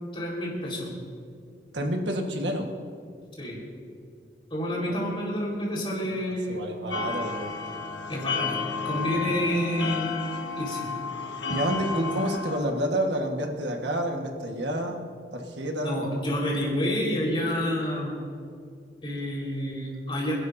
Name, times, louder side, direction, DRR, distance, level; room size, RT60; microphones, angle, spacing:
voice 1, 0.1-1.0 3.4-3.6 4.5-6.7 8.1-10.2 10.6-10.9 15.8-18.1 19.0-20.3, equal, 30° left, -3 dB, 4.5 m, -29 dB
voice 2, 1.7-2.6 4.9-5.0 6.5-7.5 11.5-15.0 15.3-16.0, right 1 dB, 85° right, 3 dB, 1.5 m, -29 dB
sound 1, 6.9-12.6, left 4 dB, 90° left, 1.5 m, -32 dB
29.0 x 11.5 x 2.7 m, 2.3 s
head